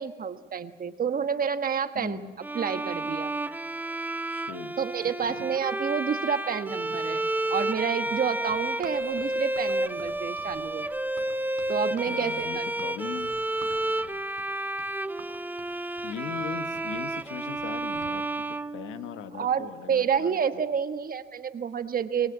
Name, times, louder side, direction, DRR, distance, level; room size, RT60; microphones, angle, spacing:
voice 1, 0.0-2.2 2.5-3.3 4.8-10.9 11.7-12.6 19.3-22.3, right 7 dB, 45° right, 9 dB, 1.3 m, -29 dB
voice 2, 1.9-2.3 4.3-5.5 10.6-10.7 12.0-13.4 16.0-20.4, left 9 dB, 90° left, 10 dB, 1.2 m, -40 dB
Bowed string instrument, 2.4-19.4, right 1 dB, 10° right, 0.6 m, -31 dB
Run, 7.7-18.2, right 8 dB, 85° right, 5.0 m, -51 dB
24.5 x 19.5 x 8.7 m, 1.5 s
cardioid pair, 90°, 20 cm